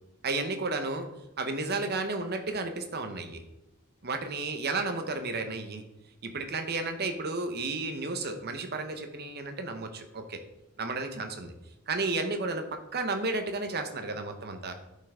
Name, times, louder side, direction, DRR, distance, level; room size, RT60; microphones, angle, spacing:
voice 1, 0.2-1.1 1.4-3.4 4.0-5.8 6.2-10.4 10.8-11.5 11.9-14.7, right 3 dB, 50° right, 7 dB, 0.9 m, -32 dB
11.0 x 5.6 x 3.7 m, 0.92 s
head